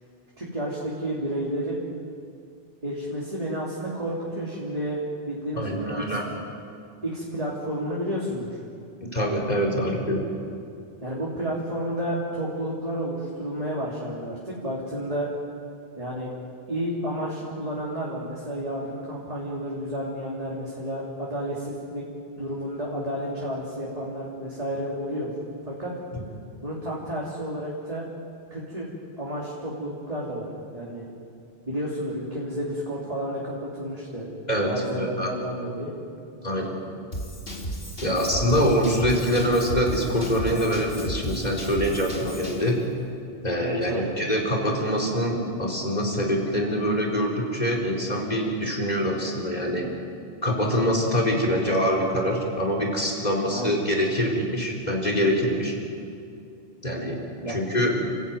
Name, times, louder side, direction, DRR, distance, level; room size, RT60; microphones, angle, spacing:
voice 1, 0.4-1.8 2.8-5.0 5.2-5.9 7.0-8.6 11.0-15.3 16.0-16.3 16.7-22.0 22.4-25.3 25.6-25.9 26.6-28.0 28.5-28.9 29.2-30.5 30.7-31.1 31.6-34.3 34.6-35.9 38.0-38.2 43.6-44.1 53.5-53.8 57.4-57.6, equal, 35° right, -5 dB, 3.3 m, -31 dB
voice 2, 5.5-6.2 9.1-10.2 26.1-26.2 34.5-35.3 36.4-36.8 38.0-42.8 43.4-49.9 50.4-55.7 56.8-57.2 57.5-58.0, equal, 40° left, 0 dB, 4.4 m, -24 dB
Drum kit / Drum, 37.1-42.7, equal, 65° left, 3.5 m, -34 dB
30.0 x 15.0 x 9.3 m, 2.5 s
omnidirectional pair, 1.1 m